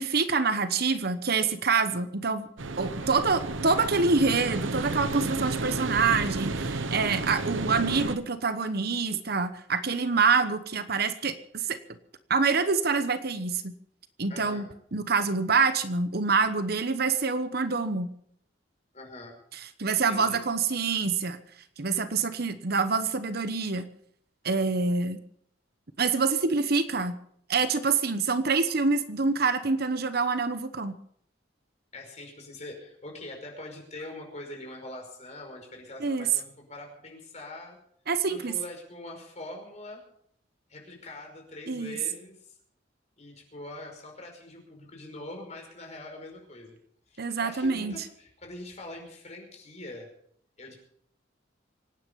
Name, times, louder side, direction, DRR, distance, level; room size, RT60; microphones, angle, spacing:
voice 1, 0.0-2.5 2.8-11.8 12.3-13.7 14.2-14.7 14.9-18.1 19.8-21.4 21.8-23.9 24.4-25.2 26.0-27.2 27.5-30.9 36.0-36.3 38.1-38.5 41.7-42.0 47.2-47.9, right 4 dB, 55° right, 11 dB, 1.0 m, -26 dB
sound 1, 2.6-8.2, right 3 dB, 85° right, 1.0 m, -32 dB
voice 2, 2.8-3.2 14.3-14.7 18.9-19.4 20.1-20.4 31.9-37.8 38.3-40.0 40.7-42.6 43.2-46.8 47.1-50.1 50.6-50.8, left 1 dB, 35° left, 2 dB, 5.3 m, -43 dB
25.0 x 9.7 x 5.4 m, 0.65 s
head